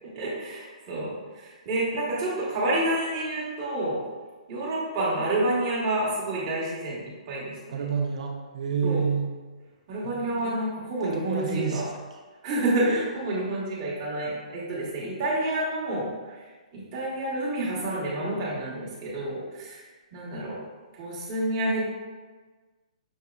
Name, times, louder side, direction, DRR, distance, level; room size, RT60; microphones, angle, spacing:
voice 1, 0.0-4.0 4.5-7.8 8.8-9.0 9.9-11.8 12.4-16.4 16.7-19.8 20.1-20.6 20.9-21.8, right 1 dB, 25° right, -7 dB, 1.2 m, -29 dB
voice 2, 7.7-9.3 10.0-10.6 11.0-11.8, right 6 dB, 60° right, 2 dB, 0.7 m, -29 dB
6.3 x 2.9 x 2.4 m, 1.4 s
hypercardioid pair, 170°, 4 cm